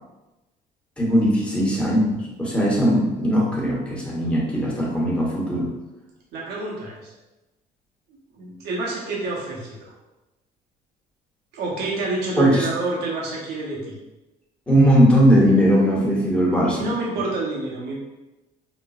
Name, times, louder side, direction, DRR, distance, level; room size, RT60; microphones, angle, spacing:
voice 1, 1.0-5.7 12.4-12.5 14.7-16.8, equal, 5° left, -4 dB, 1.0 m, -19 dB
voice 2, 6.3-7.1 8.3-9.9 11.5-13.9 16.6-17.9, right 2 dB, 80° right, -4 dB, 0.9 m, -28 dB
5.1 x 2.2 x 2.3 m, 1.0 s
cardioid pair, 110°, 17 cm